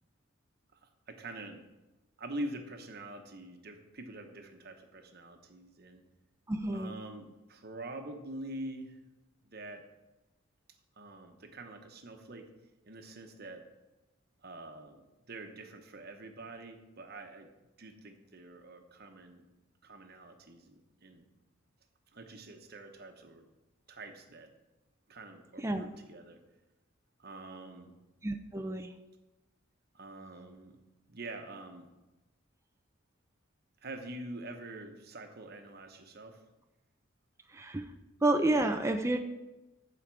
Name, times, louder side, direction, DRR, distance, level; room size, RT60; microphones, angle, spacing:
voice 1, 0.7-1.6 2.2-6.0 6.7-9.0 9.4-9.8 11.0-12.5 12.8-13.6 14.4-17.5 17.8-19.5 19.8-21.2 22.1-23.5 23.9-24.5 25.1-26.4 27.2-27.9 29.9-30.8 31.1-31.9 33.8-36.4, right 1 dB, 55° right, 5 dB, 1.1 m, -45 dB
voice 2, 6.5-6.9 25.6-25.8 28.2-28.9 37.5-37.9 38.2-39.2, right 2 dB, 15° right, 5 dB, 0.4 m, -29 dB
14.5 x 5.0 x 4.7 m, 1.0 s
head